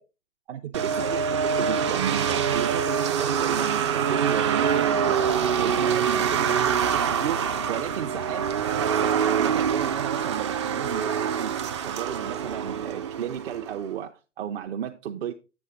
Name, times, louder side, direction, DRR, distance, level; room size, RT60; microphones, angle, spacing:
voice 1, 0.5-11.5 11.8-15.3, right 9 dB, 50° right, 0.7 m, -34 dB
sound 1, 0.7-13.8, right 7 dB, 25° right, 0.3 m, -25 dB
7.9 x 7.2 x 3.7 m
hypercardioid pair, 125°, 39 cm